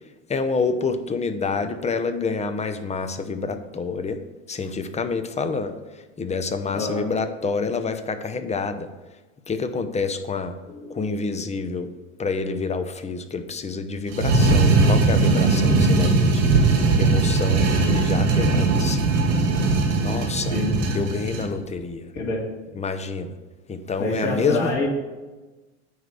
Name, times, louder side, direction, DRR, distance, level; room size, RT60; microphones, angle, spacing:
voice 1, 0.3-4.2 4.5-8.9 9.5-10.6 10.9-11.9 12.2-16.5 17.0-19.1 20.0-20.6 20.9-22.1 22.7-23.3 23.7-24.7, left 4 dB, 20° left, 9 dB, 0.7 m, -28 dB
voice 2, 6.7-7.1 10.7-11.0 20.5-20.7 22.1-22.4 24.0-24.9, left 2 dB, 50° left, -2 dB, 2.8 m, -26 dB
sound 1, 14.1-21.5, right 3 dB, 85° right, 2.0 m, -19 dB
9.5 x 3.3 x 6.7 m, 1.2 s
hypercardioid pair, 90°, 36 cm